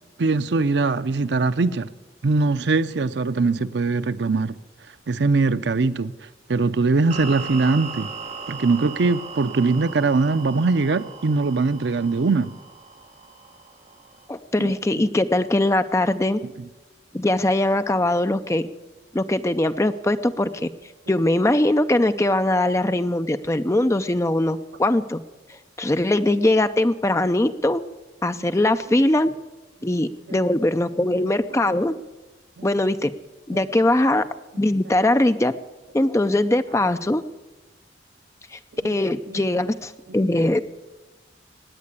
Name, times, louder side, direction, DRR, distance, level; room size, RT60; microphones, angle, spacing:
voice 1, 0.2-1.9 2.2-4.5 5.1-6.1 6.5-8.1 8.5-12.5 14.6-14.7 30.3-30.4 32.6-32.7 39.3-39.4 40.1-40.2, right 3 dB, 70° right, 0.6 m, -21 dB
sound 1, 7.1-14.3, right 5 dB, 40° right, 1.3 m, -38 dB
voice 2, 14.3-16.4 17.1-18.7 19.1-20.7 21.1-25.2 25.8-27.8 28.2-29.3 29.8-32.0 32.6-33.1 33.5-34.3 34.6-35.5 35.9-37.2 38.5-38.6 38.8-40.6, left 1 dB, 15° left, 0.5 m, -21 dB
17.0 x 9.7 x 8.2 m
head